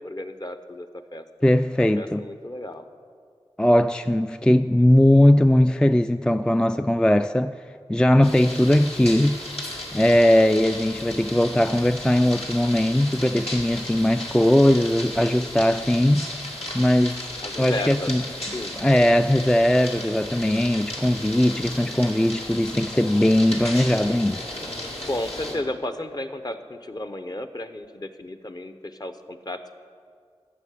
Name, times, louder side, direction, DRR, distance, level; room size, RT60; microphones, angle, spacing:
voice 1, 0.0-1.2 1.8-2.9 17.4-18.1 18.5-18.8 25.1-29.7, left 1 dB, 40° left, 0.9 m, -33 dB
voice 2, 1.4-2.2 3.6-7.6 7.9-9.4 9.9-16.3 16.7-17.2 17.6-18.2 18.8-24.4, left 1 dB, 10° left, 0.3 m, -19 dB
sound 1, 8.2-25.5, left 1 dB, 75° left, 2.1 m, -35 dB
13.5 x 6.6 x 8.3 m
wide cardioid pair, 45°, 10 cm